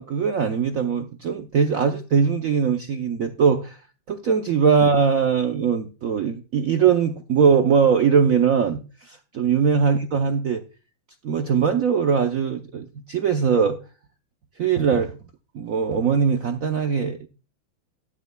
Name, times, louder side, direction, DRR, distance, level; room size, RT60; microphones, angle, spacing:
voice 1, 0.0-3.8 4.1-10.6 11.2-13.8 14.6-15.2 15.5-17.3, right 6 dB, 75° right, 0.7 m, -21 dB
13.5 x 11.5 x 2.2 m
omnidirectional pair, 2.3 m